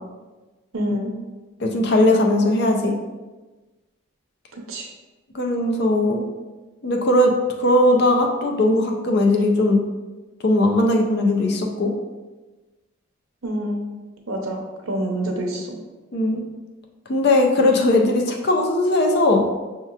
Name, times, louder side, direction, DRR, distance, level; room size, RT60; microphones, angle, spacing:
voice 1, 0.7-1.1 4.7-4.9 13.4-13.9 14.3-15.7, right 1 dB, 75° right, 1 dB, 0.7 m, -26 dB
voice 2, 1.6-2.9 5.3-6.3 6.8-7.3 7.6-9.8 10.4-11.9 16.1-16.4 17.1-19.4, left 1 dB, 50° left, 2 dB, 0.5 m, -18 dB
5.7 x 2.8 x 2.4 m, 1.2 s
head